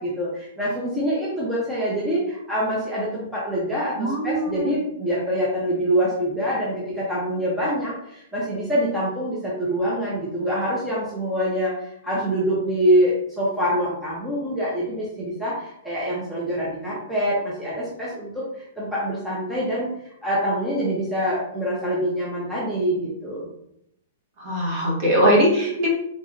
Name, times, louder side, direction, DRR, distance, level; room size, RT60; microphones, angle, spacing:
voice 1, 0.0-18.5 18.8-19.9 20.2-23.5, equal, 5° right, -7 dB, 0.6 m, -25 dB
voice 2, 4.0-4.8 24.4-25.9, equal, 35° right, -3 dB, 1.1 m, -21 dB
3.6 x 3.0 x 2.6 m, 0.77 s
hypercardioid pair, 170°, 0 cm